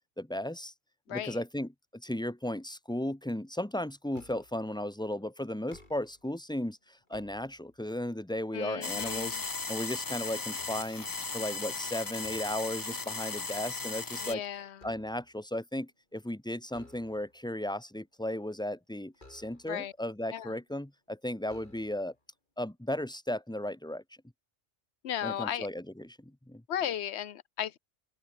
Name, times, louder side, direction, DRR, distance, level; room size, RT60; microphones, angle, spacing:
voice 1, 0.2-0.7 1.1-6.8 7.1-9.4 9.7-11.1 11.3-14.4 14.8-22.1 22.6-24.0 25.2-26.6, left 1 dB, 5° left, 1.0 m, -35 dB
voice 2, 1.1-1.4 8.5-9.4 14.2-14.9 19.7-19.9 20.3-20.6 25.0-25.7 26.7-27.8, left 10 dB, 70° left, 1.0 m, -35 dB
sound 1, 4.1-4.7 5.5-6.3 6.9-8.0 8.5-10.0 10.5-11.5 12.2-12.7 13.1-13.4 13.7-15.4 16.7-17.5 19.1-19.9 20.7-20.8 21.4-22.2, left 2 dB, 40° left, 4.4 m, -57 dB
sound 2, 8.8-14.3, left 4 dB, 25° left, 0.5 m, -36 dB
open air
omnidirectional pair, 1.2 m